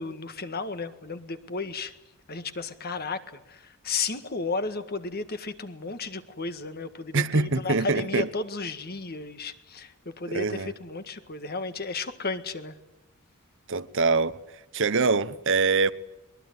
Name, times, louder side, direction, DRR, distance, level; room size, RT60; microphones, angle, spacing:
voice 1, 0.0-1.9 2.3-12.8, left 4 dB, 45° left, 1.8 m, -33 dB
voice 2, 7.1-8.3 10.3-10.7 13.7-14.3 14.7-15.9, right 4 dB, 55° right, 1.0 m, -24 dB
23.0 x 22.0 x 9.6 m
head